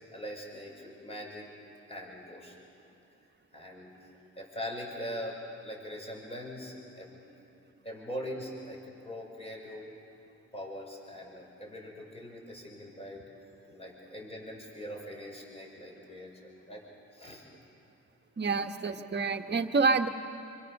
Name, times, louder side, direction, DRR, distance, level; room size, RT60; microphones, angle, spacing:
voice 1, 0.1-1.5 1.9-2.6 3.5-4.1 4.4-7.3 7.8-9.9 10.5-13.2 13.7-16.8 17.1-17.5, equal, 20° left, -1 dB, 6.6 m, -42 dB
voice 2, 18.4-20.1, right 4 dB, 35° right, 6 dB, 1.5 m, -27 dB
27.0 x 24.5 x 6.7 m, 2.7 s
cardioid pair, 90°, 30 cm